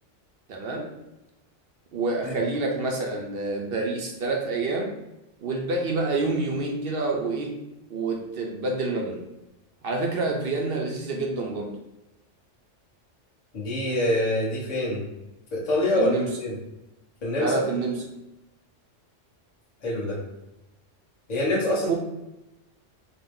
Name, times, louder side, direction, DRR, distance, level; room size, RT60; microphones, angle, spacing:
voice 1, 0.5-0.9 1.9-4.9 5.4-7.5 7.9-9.2 9.8-11.7 15.9-16.4 17.4-18.0 21.9-22.0, right 3 dB, 60° right, 1 dB, 0.7 m, -27 dB
voice 2, 13.5-15.0 15.5-16.5 17.2-17.5 19.8-20.2 21.3-21.9, left 1 dB, 35° left, -5 dB, 1.0 m, -25 dB
3.8 x 2.1 x 3.6 m, 0.95 s
omnidirectional pair, 1.3 m